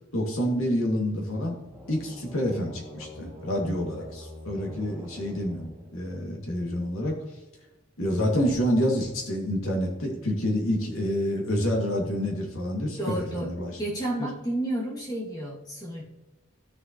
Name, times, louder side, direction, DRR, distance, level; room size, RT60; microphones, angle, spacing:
voice 1, 0.1-1.6 1.9-7.2 8.0-13.8 14.2-14.3, equal, 80° left, 0 dB, 2.4 m, -28 dB
sound 1, 1.5-6.3, left 1 dB, 10° right, 2.2 m, -45 dB
voice 2, 13.0-13.5 13.8-16.0, right 1 dB, 20° left, -5 dB, 2.3 m, -31 dB
13.5 x 6.6 x 3.0 m, 1.1 s
head